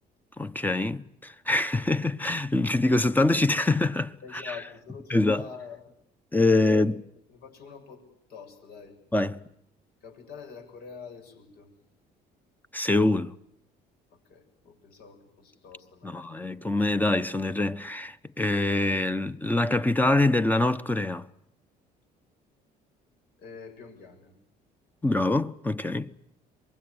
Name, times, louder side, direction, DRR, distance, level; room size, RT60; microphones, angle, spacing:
voice 1, 0.4-4.5 5.1-5.4 6.3-7.0 9.1-9.4 12.7-13.3 16.0-21.2 25.0-26.1, left 2 dB, 10° left, 1.0 m, -25 dB
voice 2, 4.2-5.9 6.5-6.8 7.3-8.0 8.3-9.0 10.0-11.7 14.3-16.4 23.4-24.3, left 5 dB, 70° left, 7.3 m, -45 dB
24.5 x 22.0 x 9.7 m
cardioid pair, 110°, 17 cm